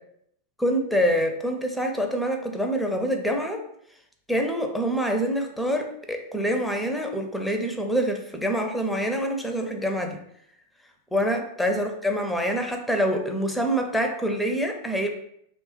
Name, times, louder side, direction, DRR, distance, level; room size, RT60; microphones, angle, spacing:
voice 1, 0.6-3.6 4.3-10.2 11.1-15.1, equal, 5° left, 3 dB, 0.4 m, -26 dB
2.9 x 2.2 x 3.1 m, 0.72 s
figure-of-eight pair, 90°, 0 cm